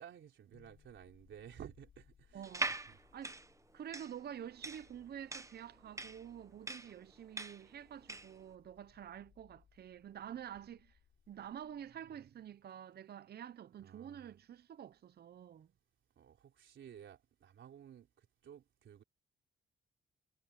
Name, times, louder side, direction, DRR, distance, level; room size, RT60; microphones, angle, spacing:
voice 1, 0.0-3.0 12.1-12.3 13.8-14.3 16.2-19.0, right 9 dB, 75° right, 3.8 m, -55 dB
sound 1, 0.5-12.6, left 8 dB, 65° left, 3.4 m, -69 dB
voice 2, 2.3-2.7 3.1-3.4 3.7-11.0 11.3-15.7, right 9 dB, 55° right, 0.7 m, -48 dB
sound 2, 2.4-8.4, right 3 dB, 15° right, 1.0 m, -42 dB
cardioid pair, 115°, 20 cm